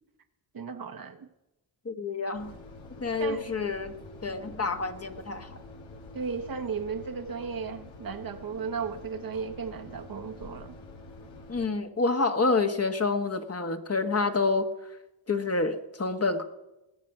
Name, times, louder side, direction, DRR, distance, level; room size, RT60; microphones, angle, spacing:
voice 1, 0.5-1.3 3.2-3.4 6.1-10.8, right 5 dB, 50° right, 1.1 m, -35 dB
voice 2, 1.8-2.5 3.0-3.9 4.2-5.6 11.5-14.7 15.3-16.4, left 3 dB, 30° left, 1.3 m, -28 dB
sound 1, 2.3-11.7, left 2 dB, 80° left, 1.9 m, -47 dB
20.0 x 7.4 x 5.9 m
cardioid pair, 60°, 46 cm